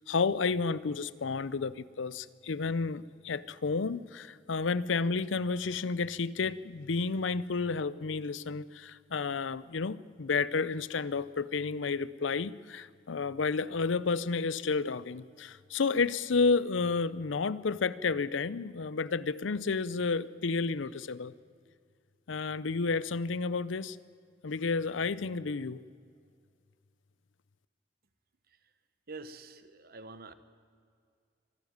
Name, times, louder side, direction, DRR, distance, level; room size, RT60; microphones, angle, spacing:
voice 1, 0.0-21.3 22.3-24.0 24.4-25.8, left 4 dB, 85° left, 18 dB, 0.6 m, -31 dB
voice 2, 29.1-30.3, right 3 dB, 55° right, 12 dB, 1.2 m, -46 dB
24.5 x 12.5 x 9.4 m, 2.2 s
head